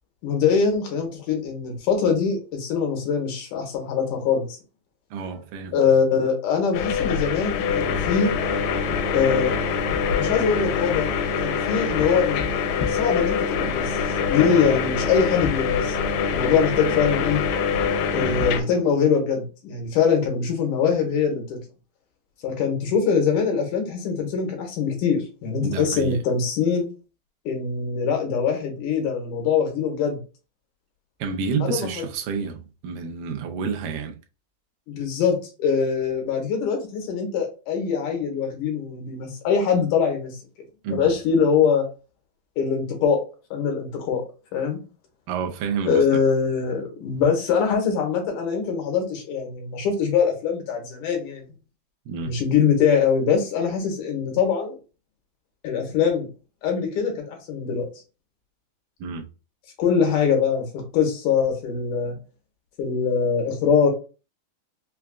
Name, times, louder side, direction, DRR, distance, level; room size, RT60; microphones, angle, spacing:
voice 1, 0.2-4.6 5.7-8.3 9.1-9.6 10.1-11.1 11.4-12.4 12.9-14.0 14.3-16.0 16.3-17.4 18.1-21.6 22.4-26.8 27.5-30.2 31.6-32.0 34.9-40.4 40.9-41.9 42.6-43.2 43.5-44.2 44.5-44.8 45.9-51.6 52.2-54.8 55.6-56.3 56.6-57.9 59.8-62.2 62.8-63.9, left 6 dB, 75° left, 2.3 m, -23 dB
voice 2, 5.1-5.8 18.1-18.4 25.6-26.2 31.2-34.2 40.8-41.1 45.3-46.2 52.1-52.4 59.0-59.3, right 5 dB, 85° right, 2.2 m, -29 dB
sound 1, 6.7-18.6, left 6 dB, 90° left, 2.4 m, -24 dB
5.7 x 2.3 x 2.3 m
omnidirectional pair, 4.0 m